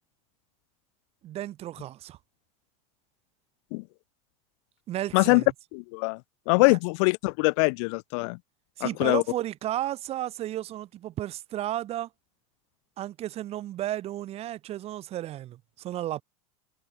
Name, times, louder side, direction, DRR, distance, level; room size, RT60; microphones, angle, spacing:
voice 1, 1.2-2.2 4.9-5.5 6.7-6.8 8.8-12.1 13.0-16.2, right 13 dB, 35° right, 6.4 m, -33 dB
voice 2, 5.7-6.2 6.5-8.4 8.8-9.2, left 33 dB, 55° left, 0.8 m, -23 dB
supercardioid pair, 140°, 18 cm